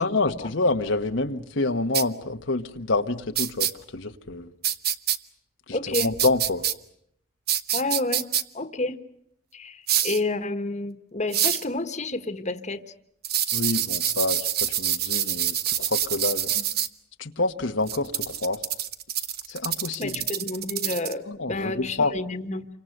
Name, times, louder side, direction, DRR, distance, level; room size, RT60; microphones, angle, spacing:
voice 1, 0.0-4.5 5.7-6.7 13.5-16.5 17.2-18.6 19.5-20.1 21.3-22.1, left 2 dB, 85° left, 5 dB, 1.3 m, -27 dB
sound 1, 1.9-2.0 3.4-3.7 4.6-5.2 5.9-6.7 7.5-8.4 9.9-10.2 11.3-11.6 13.2-16.9 17.9-21.1, right 10 dB, 55° right, 1.2 m, -26 dB
voice 2, 5.7-6.1 7.7-8.2 8.5-9.0 9.5-12.8 16.5-16.6 20.0-22.7, left 2 dB, 40° left, 10 dB, 1.5 m, -30 dB
29.0 x 25.0 x 6.6 m, 0.72 s
head